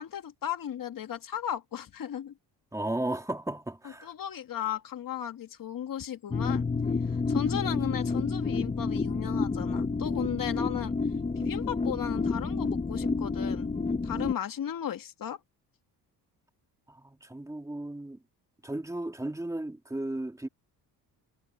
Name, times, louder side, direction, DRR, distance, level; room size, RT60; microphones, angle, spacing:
voice 1, 0.0-2.3 4.0-6.7 7.1-10.9 11.4-13.7 14.0-15.4, left 9 dB, 50° left, 2.0 m, -35 dB
voice 2, 2.7-4.1 16.9-18.2 18.6-20.5, right 1 dB, 5° right, 2.1 m, -35 dB
sound 1, 6.3-14.3, left 4 dB, 15° left, 0.9 m, -29 dB
cardioid pair, 110°, 43 cm